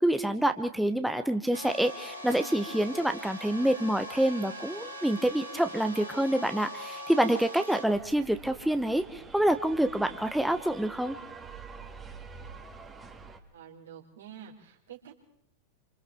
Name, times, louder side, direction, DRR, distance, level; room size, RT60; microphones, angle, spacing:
voice 1, 0.0-11.2, right 1 dB, ahead, 8 dB, 0.9 m, -27 dB
sound 1, 1.5-7.8, equal, 90° right, 3.0 m, -42 dB
sound 2, 7.9-13.4, right 5 dB, 15° right, 2.1 m, -46 dB
voice 2, 13.5-15.2, right 9 dB, 65° right, 0 dB, 4.0 m, -48 dB
28.0 x 26.5 x 3.6 m, 0.74 s
figure-of-eight pair, 90°, 0 cm